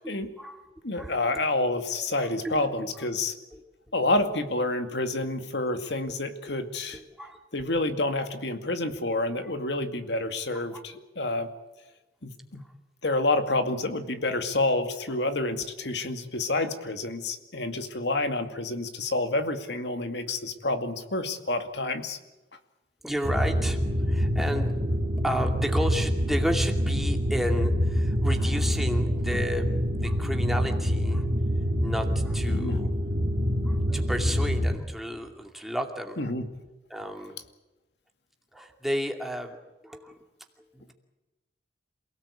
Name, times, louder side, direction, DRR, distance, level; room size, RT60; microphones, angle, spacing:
voice 1, 0.0-0.6 0.9-1.5 2.0-3.1 3.5-3.6 6.9-7.4 8.9-9.0 9.4-9.5 10.5-10.8 13.1-13.2 16.5-16.8 23.0-23.8 24.1-25.0 25.2-29.7 30.0-31.3 31.8-32.9 33.6-36.2 36.9-37.4 38.5-39.6 39.8-40.2 40.7-40.9, equal, ahead, 3 dB, 2.5 m, -33 dB
voice 2, 0.8-3.3 3.9-7.0 7.5-11.5 12.2-12.6 13.0-22.2 32.5-32.8 36.2-36.5, left 2 dB, 75° left, 7 dB, 2.3 m, -28 dB
sound 1, 23.2-34.8, equal, 50° right, 3.0 m, -26 dB
28.0 x 18.0 x 8.5 m, 1.1 s
head